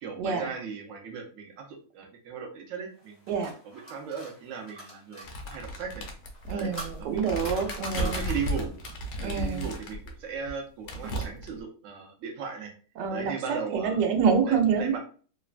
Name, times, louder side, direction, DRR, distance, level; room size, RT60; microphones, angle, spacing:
voice 1, 0.0-6.1 6.5-6.7 7.0-7.5 7.9-8.7 9.2-12.7 13.1-14.0 14.4-15.0, right 6 dB, 60° right, 2 dB, 0.9 m, -37 dB
sound 1, 3.0-5.3 6.3-9.1, right 1 dB, 20° left, 0.3 m, -43 dB
sound 2, 5.2-10.1 10.5-10.6 10.9-11.6, equal, 65° left, 1.0 m, -34 dB
voice 2, 6.5-8.2 9.2-9.7 11.0-11.2 13.0-15.0, right 6 dB, 85° right, 4 dB, 1.3 m, -27 dB
3.1 x 2.1 x 2.4 m, 0.40 s
omnidirectional pair, 1.8 m